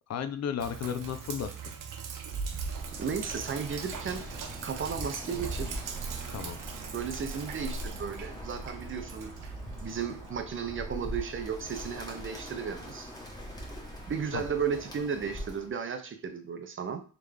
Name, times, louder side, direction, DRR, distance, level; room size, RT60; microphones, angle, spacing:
voice 1, 0.1-1.7 6.3-6.6 14.3-14.4, left 8 dB, 55° left, 10 dB, 0.5 m, -34 dB
Sink (filling or washing), 0.6-10.3, right 5 dB, 75° right, 0.7 m, -40 dB
Bird, 2.6-15.7, equal, 10° left, 1.1 m, -42 dB
voice 2, 3.0-4.3 4.6-5.8 6.9-9.3 9.8-13.1 14.1-17.0, right 6 dB, 40° right, 7 dB, 0.6 m, -34 dB
3.7 x 3.4 x 3.3 m, 0.39 s
cardioid pair, 115°, 32 cm